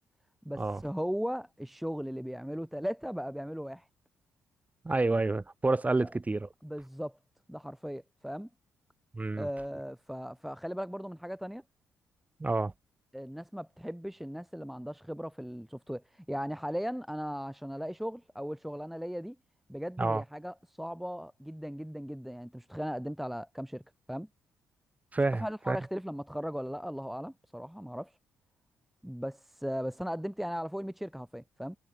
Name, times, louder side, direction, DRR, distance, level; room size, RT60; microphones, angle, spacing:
voice 1, 0.4-3.9 6.0-6.1 6.6-7.2 7.5-8.5 9.3-11.6 13.1-19.4 19.7-23.8 24.1-24.3 25.3-28.2 29.0-31.8, equal, ahead, 0.8 m, -37 dB
voice 2, 4.8-6.5 9.1-9.5 12.4-12.7 20.0-20.2 25.1-25.8, right 2 dB, 20° right, 1.8 m, -29 dB
hypercardioid pair, 45°, 7 cm